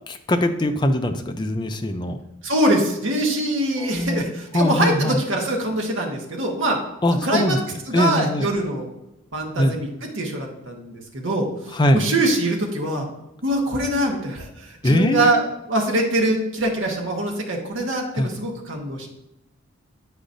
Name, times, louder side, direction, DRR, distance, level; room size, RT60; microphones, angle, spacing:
voice 1, 0.1-2.2 3.8-4.2 4.5-5.2 7.0-7.6 7.9-8.5 9.6-9.8 11.7-12.0 14.8-15.4 18.1-18.3, left 1 dB, 20° left, 6 dB, 0.4 m, -21 dB
voice 2, 2.4-6.8 7.2-7.6 7.9-8.8 9.3-11.5 11.9-13.1 13.4-19.1, right 1 dB, 60° right, 0 dB, 1.1 m, -23 dB
8.3 x 4.9 x 2.6 m, 0.88 s
head